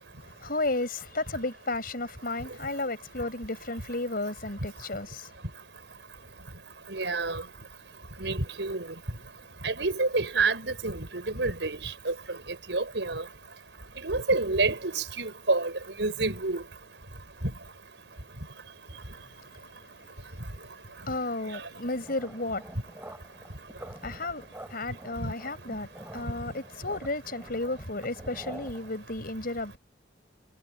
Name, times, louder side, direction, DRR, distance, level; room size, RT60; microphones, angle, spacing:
voice 1, 0.2-5.3 19.1-19.5 19.9-20.1 21.1-22.6 24.0-29.8, left 2 dB, 55° left, 6.5 m, -33 dB
voice 2, 6.9-7.4 8.2-8.9 9.6-12.1 12.7-13.2 14.0-15.7 16.0-16.6 25.2-25.3, right 3 dB, 90° right, 5.0 m, -28 dB
sound 1, 21.8-28.9, right 1 dB, 15° right, 7.5 m, -47 dB
head